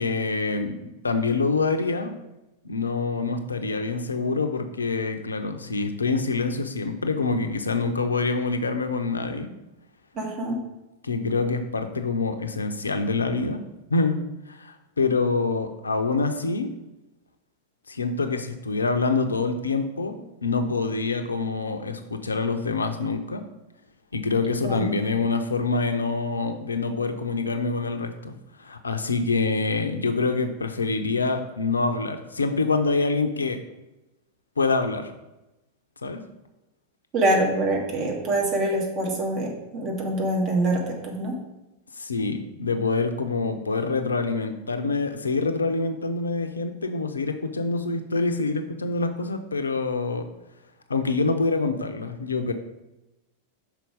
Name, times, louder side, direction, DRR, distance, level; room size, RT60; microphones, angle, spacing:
voice 1, 0.0-2.2 2.6-9.5 11.0-13.6 13.9-14.2 14.5-16.7 17.9-23.4 24.1-33.6 34.6-35.1 36.0-36.2 42.0-50.3 50.9-52.5, left 3 dB, 75° left, 7 dB, 0.6 m, -26 dB
voice 2, 10.2-10.6 24.6-24.9 37.1-41.3, right 1 dB, 35° right, -1 dB, 1.8 m, -25 dB
5.8 x 4.5 x 5.2 m, 0.98 s
figure-of-eight pair, 90°, 0 cm